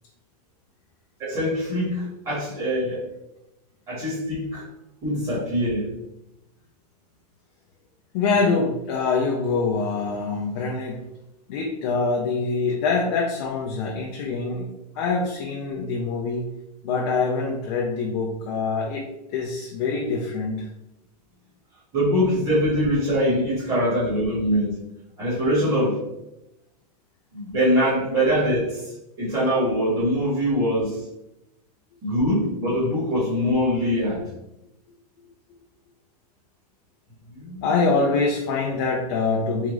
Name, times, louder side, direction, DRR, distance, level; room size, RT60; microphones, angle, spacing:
voice 1, 1.2-3.1 3.9-4.6 5.0-5.9 21.9-24.7 25.2-26.0 27.3-28.9 29.2-31.0 32.0-34.2 37.3-37.7, equal, 25° right, -9 dB, 1.4 m, -23 dB
voice 2, 8.1-11.0 11.5-14.7 15.0-16.5 16.8-19.0 19.3-20.7 37.6-39.7, left 4 dB, 40° left, -1 dB, 0.5 m, -24 dB
3.5 x 2.4 x 3.0 m, 0.89 s
supercardioid pair, 170°, 21 cm